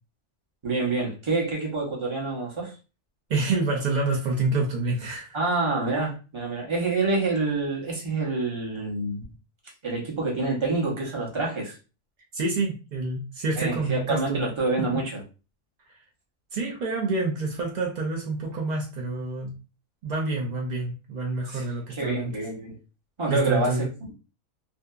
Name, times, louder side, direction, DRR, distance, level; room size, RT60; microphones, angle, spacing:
voice 1, 0.6-2.8 5.3-9.2 9.8-11.8 13.6-15.2 21.5-21.6 21.9-22.8 23.2-23.9, right 3 dB, 30° right, 0.7 m, -27 dB
voice 2, 3.3-5.4 12.3-14.4 14.8-14.9 16.5-19.6 20.0-22.3 23.3-23.9, right 3 dB, 80° right, 0.3 m, -27 dB
2.7 x 2.3 x 2.3 m
omnidirectional pair, 1.5 m